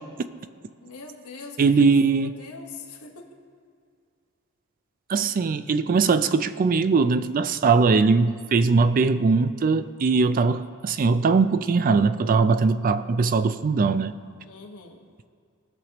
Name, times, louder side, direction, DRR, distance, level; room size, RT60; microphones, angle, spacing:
voice 1, 0.8-3.3 14.5-15.0, left 4 dB, 85° left, 1 dB, 1.3 m, -42 dB
voice 2, 1.6-2.3 5.1-14.1, right 4 dB, 40° right, 12 dB, 0.3 m, -21 dB
19.0 x 6.5 x 3.0 m, 2.2 s
head